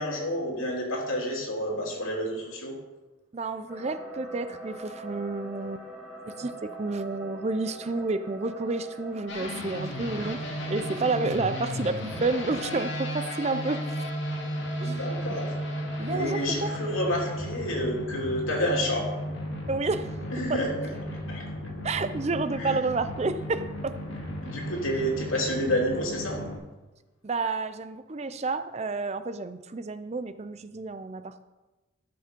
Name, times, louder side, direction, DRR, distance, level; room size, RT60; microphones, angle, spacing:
voice 1, 0.0-2.8 14.8-15.5 16.1-19.1 20.3-20.9 21.3-21.4 22.6-22.8 24.4-26.4, equal, 80° left, -1 dB, 3.0 m, -29 dB
voice 2, 3.3-5.8 6.3-14.1 14.8-15.1 16.0-16.7 19.7-20.1 20.5-20.6 21.8-24.0 27.2-31.4, right 3 dB, 30° right, 11 dB, 0.5 m, -30 dB
sound 1, 3.7-17.4, right 1 dB, 5° right, 4.6 m, -43 dB
sound 2, 9.3-26.6, left 1 dB, 60° left, 2.4 m, -35 dB
13.5 x 6.9 x 5.2 m, 1.1 s
head